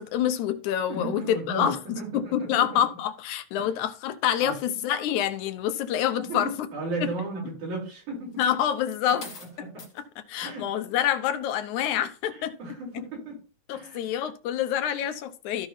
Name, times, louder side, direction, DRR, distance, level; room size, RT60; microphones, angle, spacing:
voice 1, 0.0-6.5 8.4-9.3 9.6-9.7 10.3-12.5 13.7-15.7, left 10 dB, 85° left, 2.3 m, -27 dB
voice 2, 0.9-2.7 3.6-3.7 4.4-4.8 6.2-8.4 9.7-9.8 10.4-10.7 12.3-13.4 13.7-14.0, right 2 dB, 85° right, 5.0 m, -35 dB
sound 1, 8.3-10.0 10.8-11.0, left 4 dB, 35° left, 2.1 m, -45 dB
14.0 x 5.7 x 2.7 m
omnidirectional pair, 3.3 m